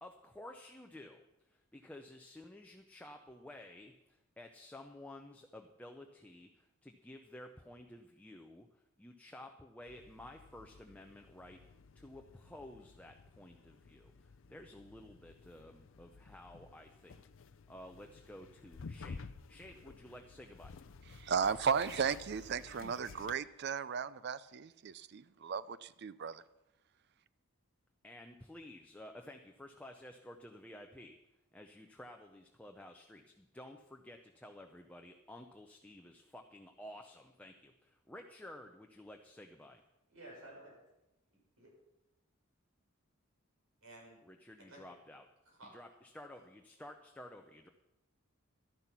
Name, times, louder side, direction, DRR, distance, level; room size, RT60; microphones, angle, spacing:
voice 1, 0.0-11.6 11.9-17.2 17.7-19.2 19.5-20.8 28.0-31.2 31.5-39.8 44.2-45.3 45.6-47.7, left 1 dB, 5° left, 3 dB, 0.6 m, -53 dB
sound 1, 9.9-23.4, left 4 dB, 60° left, 0.5 m, -53 dB
voice 2, 21.2-26.4, right 6 dB, 50° right, 17 dB, 0.5 m, -35 dB
voice 3, 40.1-40.7 41.6-41.7 43.8-44.2 44.6-44.8 45.5-45.7, right 1 dB, 85° right, -2 dB, 6.2 m, -53 dB
12.0 x 11.0 x 5.9 m, 0.95 s
head